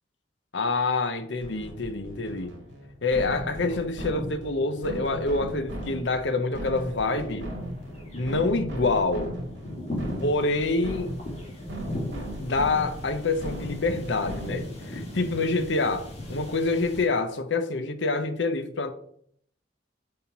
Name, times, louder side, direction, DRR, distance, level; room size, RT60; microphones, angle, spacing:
voice 1, 0.5-2.5 3.0-7.5 8.1-9.3 10.2-11.1 12.4-18.9, left 3 dB, 75° left, 0.8 m, -27 dB
sound 1, 1.4-14.9, right 1 dB, 80° right, 2.2 m, -37 dB
sound 2, 1.9-2.5 2.8-17.0, left 1 dB, 35° left, 2.4 m, -39 dB
5.7 x 4.3 x 5.8 m
head